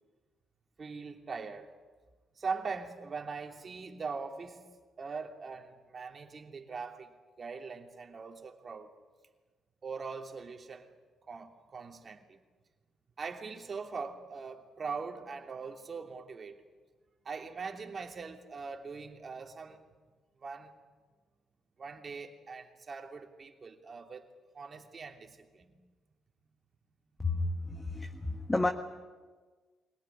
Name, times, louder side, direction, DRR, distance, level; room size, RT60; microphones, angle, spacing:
voice 1, 0.8-1.7 2.4-4.6 5.0-8.9 9.8-10.9 11.3-12.4 13.2-16.6 17.2-19.8 20.4-20.7 21.8-24.3 24.5-25.7 27.3-27.4 28.3-28.4, right 5 dB, 40° right, 3 dB, 3.0 m, -41 dB
voice 2, 27.2-28.7, left 2 dB, 15° left, 5 dB, 1.5 m, -31 dB
23.5 x 18.5 x 9.7 m, 1.4 s
cardioid pair, 90°, 0 cm